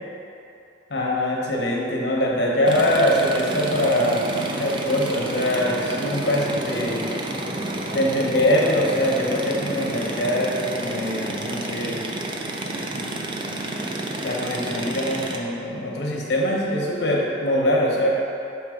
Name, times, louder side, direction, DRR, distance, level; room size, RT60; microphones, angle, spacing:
voice 1, 0.9-7.0 7.9-12.0 12.7-13.1 14.0-18.1, left 1 dB, 65° left, -2 dB, 1.0 m, -23 dB
sound 1, 2.7-15.4, right 1 dB, 25° right, 0.4 m, -30 dB
6.6 x 3.4 x 5.0 m, 2.8 s
head